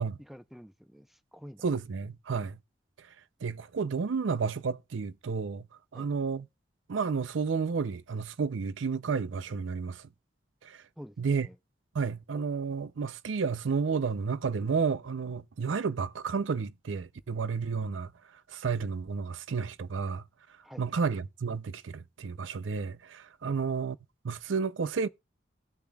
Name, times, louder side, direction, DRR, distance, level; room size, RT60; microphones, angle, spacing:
voice 1, 0.2-1.6 5.9-6.1 11.0-11.6 20.6-20.8 23.4-23.6, equal, ahead, 0.5 m, -49 dB
voice 2, 1.6-2.6 3.0-3.1 3.4-5.7 5.9-6.5 6.9-10.1 10.6-10.8 11.2-11.5 11.9-18.1 18.5-20.2 20.8-24.0 24.2-25.1, right 5 dB, 80° right, 0.5 m, -31 dB
18.5 x 6.9 x 2.3 m
head